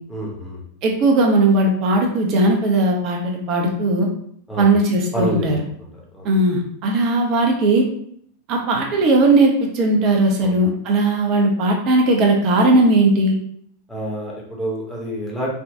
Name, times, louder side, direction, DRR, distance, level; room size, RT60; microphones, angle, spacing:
voice 1, 0.1-0.6 4.5-4.7 5.1-5.5 5.8-5.9 6.1-6.3 10.4-10.6 13.9-15.5, equal, 5° left, -4 dB, 0.9 m, -28 dB
voice 2, 0.8-4.1 4.6-5.6 6.2-7.9 8.5-13.3, right 2 dB, 40° right, 1 dB, 0.6 m, -17 dB
3.4 x 2.3 x 2.7 m, 0.67 s
figure-of-eight pair, 90°, 0 cm